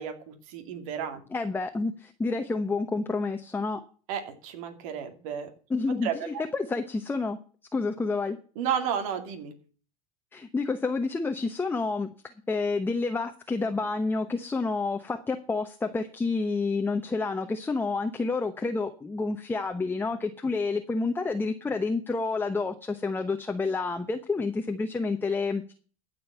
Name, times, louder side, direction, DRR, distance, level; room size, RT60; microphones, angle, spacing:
voice 1, 0.0-1.2 4.1-5.5 6.0-6.4 8.6-9.5, right 8 dB, 70° right, 6 dB, 2.3 m, -32 dB
voice 2, 1.3-3.8 5.7-7.4 7.7-8.4 10.3-12.1 12.5-25.7, left 3 dB, 10° left, 6 dB, 0.9 m, -29 dB
15.0 x 5.3 x 7.9 m, 0.40 s
supercardioid pair, 115°, 18 cm